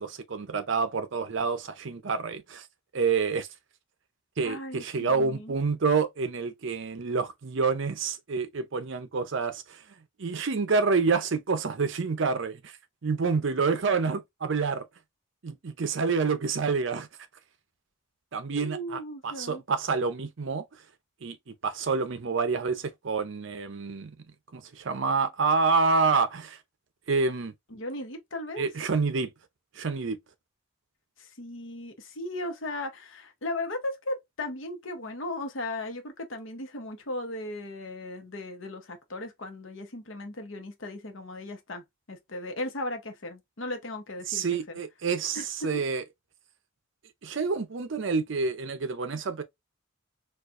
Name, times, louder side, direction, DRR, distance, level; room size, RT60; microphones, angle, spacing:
voice 1, 0.0-2.7 2.9-3.5 4.4-9.8 10.2-12.7 13.0-14.9 15.4-17.1 18.3-20.6 21.2-24.1 24.5-26.6 27.1-27.5 28.6-29.3 29.8-30.2 44.3-46.0 47.2-49.4, right 4 dB, 60° right, 0.5 m, -28 dB
voice 2, 4.4-5.5 18.5-19.6 27.7-28.7 31.2-44.8 45.3-45.4, left 1 dB, 65° left, 0.9 m, -37 dB
4.3 x 2.4 x 2.4 m
head